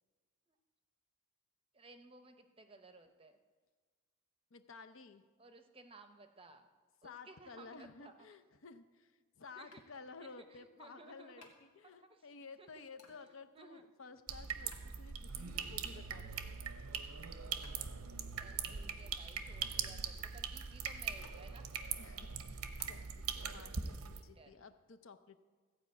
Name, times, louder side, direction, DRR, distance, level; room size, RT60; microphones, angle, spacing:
voice 1, 1.7-3.4 5.4-6.7 7.0-8.1 9.5-9.8 10.2-11.5 12.0-12.3 12.6-12.8 13.2-13.8 18.4-21.6 24.1-24.7, right 3 dB, 25° right, 8 dB, 0.6 m, -58 dB
voice 2, 4.5-5.2 7.0-16.6 22.0-22.3 22.8-25.4, left 4 dB, 60° left, 10 dB, 0.6 m, -54 dB
sound 1, 9.7-23.0, left 3 dB, 85° left, 1.8 m, -65 dB
sound 2, 14.3-24.2, right 7 dB, 90° right, 0.8 m, -42 dB
14.5 x 5.0 x 8.2 m, 1.4 s
head